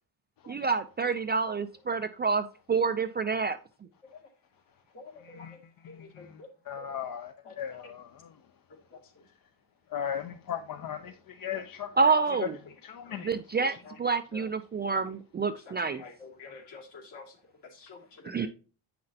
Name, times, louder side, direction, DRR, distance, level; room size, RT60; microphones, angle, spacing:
voice 1, 0.5-3.6 12.0-12.6 13.2-16.0 18.2-18.5, right 4 dB, 25° right, 0.3 m, -28 dB
voice 2, 4.9-5.6 5.9-6.5 6.8-7.0 7.4-7.9 8.9-9.0 11.5-11.6 13.0-13.3 13.6-14.0 14.3-14.4 14.9-15.0 15.7-17.3 17.7-18.5, left 4 dB, 65° left, 2.4 m, -48 dB
voice 3, 6.7-7.3 7.6-8.0 9.9-11.1 11.4-11.9 12.9-13.3, left 9 dB, 50° left, 0.6 m, -36 dB
7.5 x 5.9 x 2.7 m
cardioid pair, 110°, 46 cm